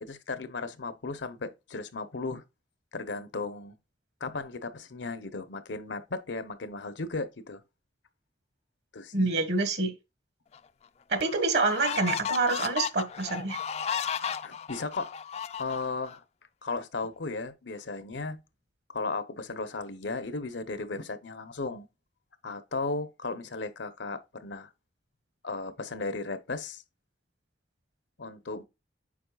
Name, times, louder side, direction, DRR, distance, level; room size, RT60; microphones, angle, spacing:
voice 1, 0.0-2.4 2.9-3.8 4.2-7.6 8.9-9.1 14.4-15.1 15.6-16.2 16.6-18.4 18.9-21.9 22.4-24.7 25.4-26.8 28.2-28.6, left 3 dB, 85° left, 0.9 m, -35 dB
voice 2, 9.1-9.9 11.1-13.6, right 3 dB, 65° right, 1.5 m, -27 dB
sound 1, 10.5-10.6 11.2-16.2, left 8 dB, 35° left, 0.3 m, -34 dB
8.7 x 5.5 x 2.4 m
head